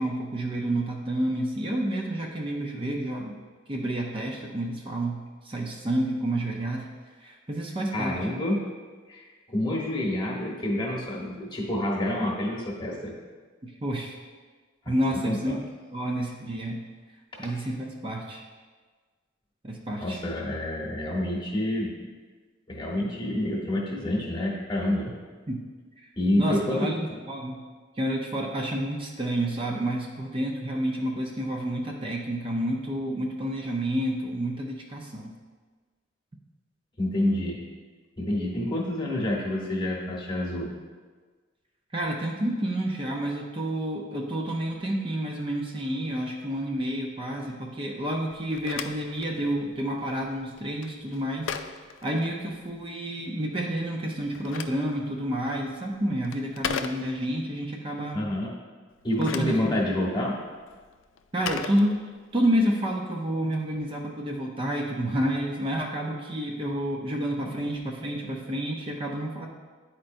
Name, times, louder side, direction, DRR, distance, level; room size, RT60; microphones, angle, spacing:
voice 1, 0.0-3.3 3.7-5.2 5.4-6.9 7.2-8.2 13.6-14.1 14.9-15.6 15.9-16.8 17.4-18.4 19.6-20.2 25.5-25.6 26.4-27.6 28.0-35.3 41.9-51.5 52.0-58.2 59.2-59.8 61.3-62.0 62.3-69.5, right 1 dB, 30° right, -1 dB, 0.6 m, -29 dB
voice 2, 7.9-8.6 9.1-13.1 15.1-15.6 20.0-22.1 22.7-25.1 26.2-26.9 37.0-37.6 38.2-40.7 58.1-58.5 59.0-60.4, left 1 dB, 25° left, -2 dB, 1.1 m, -28 dB
Telephone, 48.3-52.8 54.1-57.5 58.9-62.5, left 7 dB, 85° left, 0.4 m, -39 dB
9.8 x 4.4 x 2.6 m, 1.4 s
head